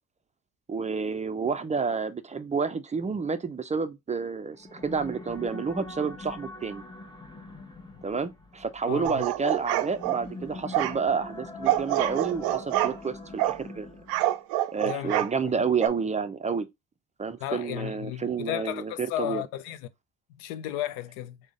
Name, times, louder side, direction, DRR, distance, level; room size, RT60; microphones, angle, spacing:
voice 1, 0.7-6.8 8.0-13.9 14.7-16.7 17.2-19.4, right 5 dB, 20° right, 0.4 m, -30 dB
sound 1, 4.5-14.4, left 2 dB, 10° left, 0.8 m, -43 dB
voice 2, 8.9-9.2 14.8-15.5 17.4-19.9 20.3-21.4, left 13 dB, 90° left, 0.5 m, -34 dB
sound 2, 9.0-10.2 10.7-11.0 11.6-13.0 13.4-13.6 14.1-15.3 15.8-15.9, right 14 dB, 80° right, 0.5 m, -26 dB
3.7 x 2.1 x 3.6 m
supercardioid pair, 75°, 37 cm